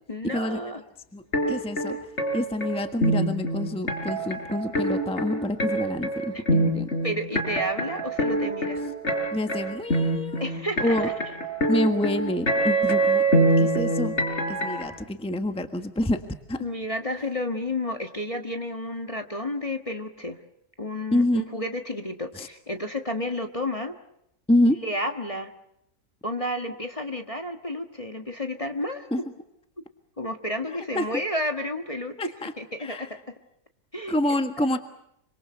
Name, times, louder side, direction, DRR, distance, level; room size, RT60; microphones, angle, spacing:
voice 1, 0.1-0.8 6.3-6.6 7.0-8.8 10.4-11.1 16.6-20.4 20.8-23.9 24.8-25.5 26.2-29.3 30.2-33.3 33.9-34.2 34.6-34.8, left 1 dB, 20° left, 4 dB, 1.5 m, -31 dB
voice 2, 1.1-2.0 2.3-6.9 9.3-10.5 10.8-11.1 11.7-14.1 14.5-16.2 16.5-16.6 21.1-21.4 22.4-22.5 24.5-24.8 29.1-29.2 30.9-31.0 32.2-32.5 32.8-33.1 34.1-34.8, left 1 dB, 5° left, 7 dB, 1.3 m, -27 dB
sound 1, 1.3-14.8, right 1 dB, 45° left, 4.9 m, -24 dB
26.5 x 25.5 x 6.8 m, 0.79 s
omnidirectional pair, 1.7 m